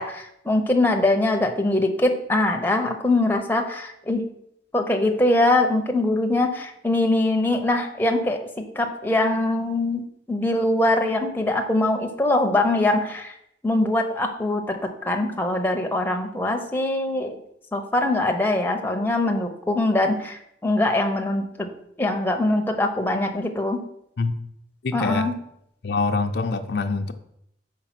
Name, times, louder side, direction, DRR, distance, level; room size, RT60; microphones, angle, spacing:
voice 1, 0.0-4.2 4.7-13.3 13.6-17.4 17.7-21.7 22.0-23.8 24.9-25.3, left 2 dB, 10° left, 3 dB, 0.7 m, -22 dB
voice 2, 24.8-25.3 25.8-27.1, left 3 dB, 65° left, 6 dB, 0.5 m, -25 dB
5.8 x 4.7 x 5.9 m, 0.75 s
head